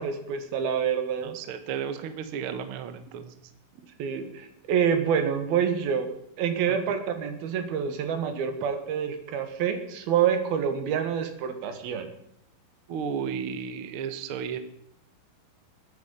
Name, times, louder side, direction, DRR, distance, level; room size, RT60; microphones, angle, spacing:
voice 1, 0.0-1.4 3.1-3.2 4.0-6.1 6.4-12.1, right 7 dB, 85° right, 8 dB, 3.5 m, -27 dB
voice 2, 1.2-3.3 6.7-6.8 12.9-14.6, right 7 dB, 60° right, 9 dB, 1.4 m, -33 dB
20.5 x 10.5 x 5.6 m, 0.73 s
omnidirectional pair, 4.2 m